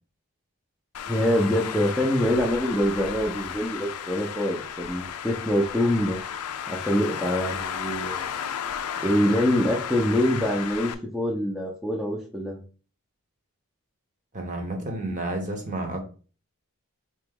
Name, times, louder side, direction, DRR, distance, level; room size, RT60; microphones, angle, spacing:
Traffic noise roadway noise, 0.9-10.9, left 8 dB, 85° left, 0.4 m, -34 dB
voice 1, 1.1-6.2 6.7-8.3 9.0-12.6, equal, ahead, 0.5 m, -25 dB
voice 2, 14.3-16.0, right 2 dB, 35° right, 0.9 m, -31 dB
3.8 x 3.0 x 3.6 m
head